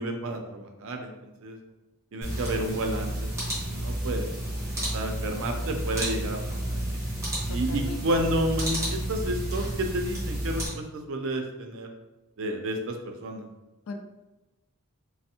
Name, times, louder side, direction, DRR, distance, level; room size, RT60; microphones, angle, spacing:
voice 1, 0.0-1.6 2.1-3.3 3.6-4.3 4.8-7.0 7.5-11.9 12.4-13.5, right 1 dB, 65° right, 4 dB, 0.4 m, -31 dB
sound 1, 2.2-10.7, right 1 dB, 15° right, 1.0 m, -31 dB
voice 2, 7.5-8.0 13.9-14.0, left 2 dB, 80° left, 5 dB, 0.4 m, -38 dB
3.3 x 2.0 x 2.7 m, 1.1 s
head